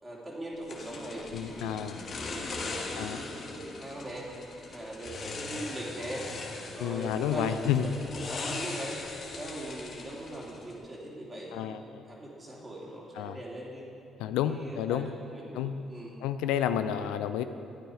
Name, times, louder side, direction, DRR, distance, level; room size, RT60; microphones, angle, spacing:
voice 1, 0.0-4.2 4.7-6.2 6.7-9.0 9.3-11.8 12.1-13.9 14.5-15.0 15.3-16.2, right 1 dB, 25° right, -4 dB, 3.1 m, -40 dB
sound 1, 0.7-10.8, left 3 dB, 55° left, 1.5 m, -40 dB
voice 2, 1.3-2.0 3.0-3.2 6.8-7.9 11.5-12.0 13.1-13.4 14.2-15.1 15.5-15.8 16.2-17.4, left 9 dB, 85° left, 10 dB, 0.4 m, -30 dB
11.5 x 9.2 x 5.0 m, 2.6 s
supercardioid pair, 65°, 0 cm